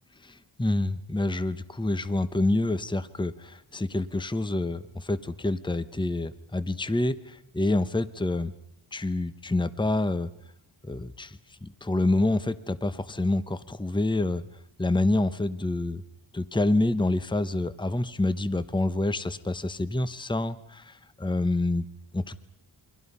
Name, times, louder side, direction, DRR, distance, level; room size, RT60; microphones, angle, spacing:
voice 1, 0.2-8.5 8.9-10.3 10.9-14.4 14.8-16.0 16.3-21.8 22.1-22.4, left 2 dB, 10° left, 13 dB, 0.9 m, -27 dB
29.0 x 24.0 x 5.5 m, 0.77 s
wide cardioid pair, 115°, 49 cm